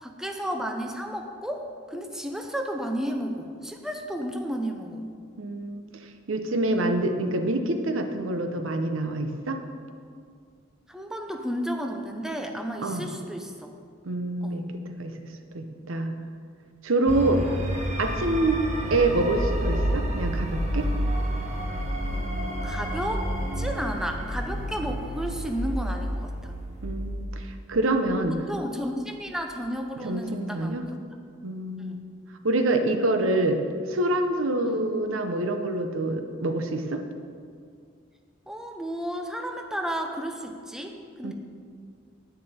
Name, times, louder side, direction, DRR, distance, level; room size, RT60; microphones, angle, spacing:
voice 1, 0.0-5.1 10.9-13.7 14.4-14.7 17.2-17.3 22.6-23.3 23.6-26.6 28.3-30.8 31.8-32.1 34.6-34.9 38.5-41.3, equal, 5° right, 3 dB, 0.7 m, -33 dB
voice 2, 5.4-5.8 6.3-9.6 12.8-13.1 14.1-15.1 15.5-16.1 16.8-17.4 18.0-18.6 18.9-20.9 26.8-28.3 30.0-30.8 31.4-32.0 32.4-33.6 33.9-37.0 41.2-41.3, right 2 dB, 80° right, 7 dB, 0.8 m, -26 dB
sound 1, 17.1-28.1, equal, 35° right, 1.2 m, -29 dB
9.6 x 9.4 x 4.3 m, 2.2 s
head